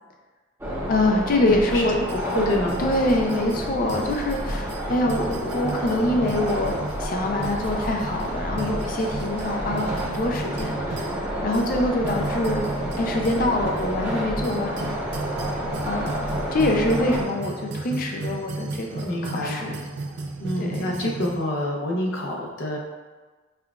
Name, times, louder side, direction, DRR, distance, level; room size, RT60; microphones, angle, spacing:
sound 1, 0.6-17.2, equal, 10° right, 0.6 m, -30 dB
voice 1, 0.9-2.0 2.8-11.1 11.4-12.6 13.0-14.9 15.8-16.3 16.5-19.8 20.6-20.9, left 1 dB, 45° left, 1 dB, 0.4 m, -25 dB
voice 2, 1.4-2.8 19.0-19.6 20.4-22.8, left 1 dB, 80° left, -2 dB, 0.7 m, -27 dB
sound 2, 1.5-21.4, right 2 dB, 55° right, 0.4 m, -35 dB
5.6 x 2.3 x 2.3 m, 1.3 s
head